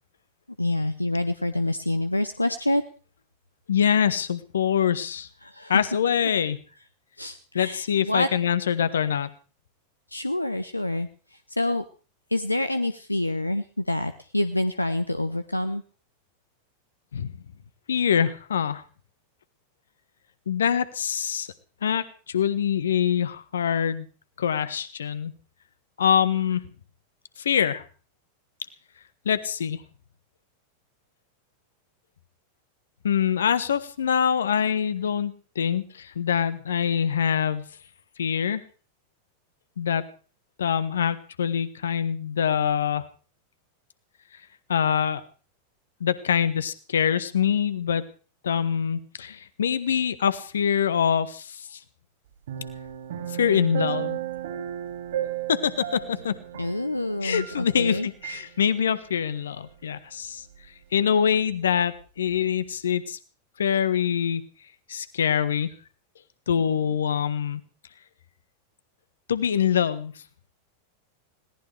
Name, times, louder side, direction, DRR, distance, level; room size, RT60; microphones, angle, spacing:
voice 1, 0.6-2.8 5.4-5.8 7.2-8.3 10.1-11.1 11.5-11.8 12.3-15.8 56.6-58.1 66.7-66.9, left 1 dB, 85° left, 11 dB, 0.7 m, -27 dB
voice 2, 3.7-5.3 5.7-6.6 7.5-9.3 17.1-17.3 17.9-18.8 20.5-21.5 21.8-24.1 24.4-25.3 26.0-26.6 27.4-27.8 29.2-29.8 33.0-37.6 38.2-38.6 39.8-40.0 40.6-43.1 44.7-45.2 46.0-48.0 48.4-51.8 53.4-54.2 55.5-56.3 57.2-60.4 60.9-63.2 63.6-64.4 64.9-65.7 66.5-67.6 69.3-70.1, left 8 dB, 65° left, 15 dB, 1.2 m, -24 dB
sound 1, 52.5-57.9 58.2-58.4, right 11 dB, 60° right, 3.3 m, -34 dB
21.0 x 17.5 x 3.4 m, 0.38 s
figure-of-eight pair, 90°, 0 cm